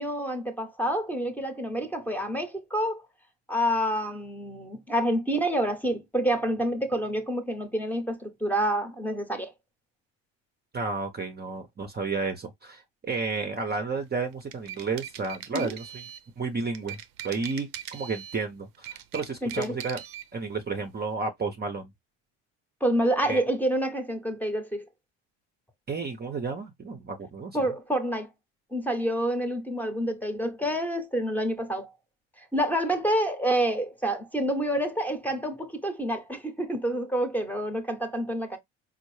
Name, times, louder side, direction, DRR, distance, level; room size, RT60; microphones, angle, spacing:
voice 1, 0.0-3.0 3.5-9.5 15.5-15.7 19.4-19.8 22.8-24.8 27.5-28.3 28.7-31.9 32.4-38.6, right 1 dB, 5° left, 0.8 m, -28 dB
voice 2, 10.7-16.0 16.4-20.0 20.3-21.9 23.3-23.4 25.9-27.6, right 4 dB, 25° right, 0.7 m, -32 dB
sound 1, 14.3-16.3 16.7-18.4 18.7-20.3, right 11 dB, 65° right, 0.6 m, -41 dB
4.3 x 2.0 x 3.1 m
supercardioid pair, 75°, 38 cm